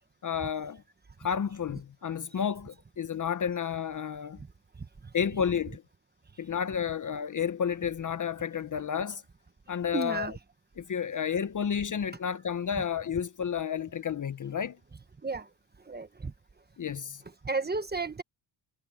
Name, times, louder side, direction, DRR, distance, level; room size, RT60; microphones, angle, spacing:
voice 1, 0.2-0.8 1.2-4.4 5.1-5.8 6.4-9.2 9.7-10.3 10.8-14.8 16.8-17.2, left 7 dB, 40° left, 0.9 m, -31 dB
voice 2, 9.9-10.3 15.2-15.5 15.9-16.3 17.4-18.2, right 4 dB, 20° right, 1.3 m, -32 dB
cardioid pair, 115°, 49 cm